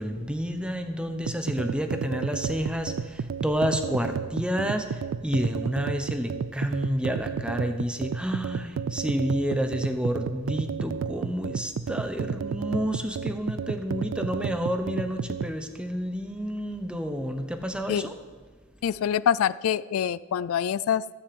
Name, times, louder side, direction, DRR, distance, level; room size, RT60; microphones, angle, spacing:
voice 1, 0.0-18.2, equal, 5° right, 6 dB, 0.9 m, -30 dB
sound 1, 1.2-15.6, right 6 dB, 65° right, 0.3 m, -32 dB
voice 2, 18.8-21.1, left 9 dB, 80° left, 18 dB, 0.3 m, -25 dB
13.5 x 6.4 x 7.8 m, 1.4 s
head